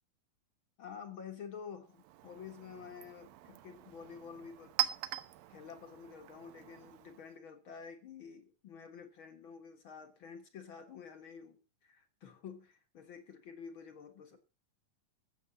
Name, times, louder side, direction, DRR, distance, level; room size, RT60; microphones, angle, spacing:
voice 1, 0.8-4.7 5.5-14.4, left 6 dB, 50° left, 1.6 m, -49 dB
Chink clink, 1.9-7.4, right 14 dB, 80° right, 2.7 m, -42 dB
15.0 x 7.8 x 5.9 m
omnidirectional pair, 4.1 m